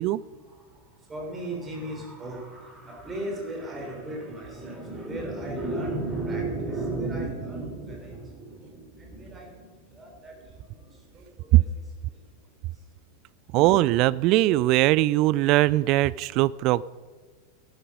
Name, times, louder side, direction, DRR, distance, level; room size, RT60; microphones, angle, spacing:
voice 1, 0.1-12.3 12.6-12.7, right 2 dB, 20° right, 0 dB, 3.4 m, -35 dB
voice 2, 13.5-16.8, right 17 dB, 40° right, 21 dB, 0.4 m, -20 dB
14.0 x 12.5 x 5.3 m, 1.4 s
figure-of-eight pair, 90°, 0 cm